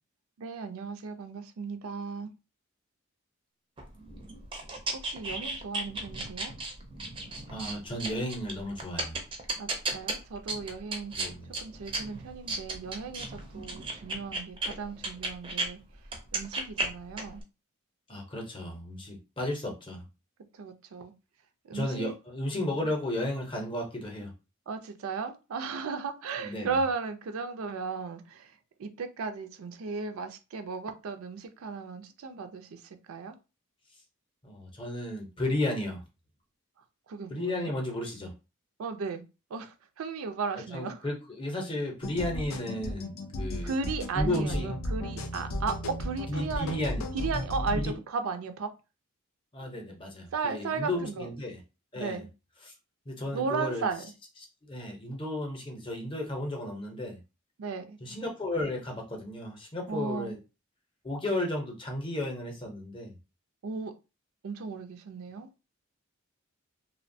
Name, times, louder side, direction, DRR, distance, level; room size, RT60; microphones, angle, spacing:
voice 1, 0.4-2.3 5.0-6.5 9.6-11.3 11.6-15.8 16.3-17.4 20.5-21.1 21.6-22.1 22.8-22.9 24.7-33.4 37.1-37.7 38.8-39.3 39.5-41.1 43.6-46.8 47.1-48.7 50.3-51.3 51.9-52.3 53.3-54.1 57.6-58.0 59.9-60.3 63.6-63.9 64.4-65.5, right 4 dB, 85° right, 0.4 m, -35 dB
sound 1, 3.8-15.7 16.0-17.4, right 2 dB, 25° right, 0.4 m, -35 dB
voice 2, 7.5-9.2 11.1-11.5 18.1-20.1 21.7-24.3 26.4-26.7 34.4-36.0 37.3-38.3 40.7-43.1 43.4-43.7 44.1-44.7 46.3-47.0 47.7-47.9 49.5-51.6 51.9-52.2 53.1-53.9 54.7-57.2 58.0-60.4 61.0-63.1, left 1 dB, 25° left, 0.6 m, -33 dB
sound 2, 42.0-47.9, left 1 dB, 85° left, 0.5 m, -34 dB
2.8 x 2.1 x 2.6 m
head